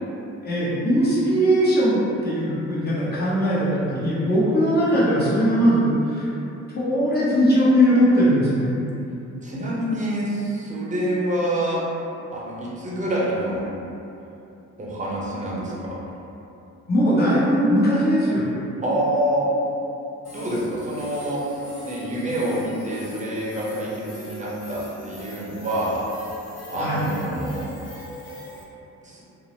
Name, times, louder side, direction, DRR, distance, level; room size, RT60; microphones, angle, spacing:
voice 1, 0.4-6.3 6.7-8.7 16.9-18.4 26.8-27.0, equal, 30° left, -9 dB, 1.0 m, -20 dB
voice 2, 9.4-11.8 12.3-13.7 14.8-16.0 18.8-19.5 20.3-21.6 21.8-26.0 26.7-27.7 29.0-29.2, right 1 dB, 25° right, -6 dB, 0.6 m, -26 dB
sound 1, 20.2-28.6, left 1 dB, 60° left, 0.8 m, -41 dB
2.6 x 2.0 x 3.0 m, 2.8 s
cardioid pair, 90°, 30 cm